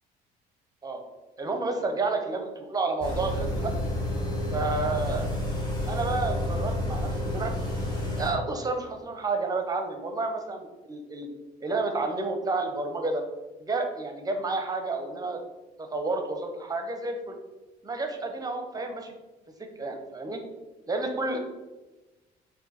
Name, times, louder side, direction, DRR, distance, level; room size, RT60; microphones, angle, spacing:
voice 1, 1.4-3.7 4.5-5.3 5.9-7.5 8.2-11.3 11.6-13.2 13.6-15.4 15.8-17.3 17.8-19.1 19.8-20.4 20.9-21.4, right 3 dB, 20° right, 4 dB, 0.6 m, -30 dB
sound 1, 3.0-8.3, left 1 dB, 25° left, 1.2 m, -30 dB
3.9 x 2.6 x 3.9 m, 1.1 s
cardioid pair, 110°, 17 cm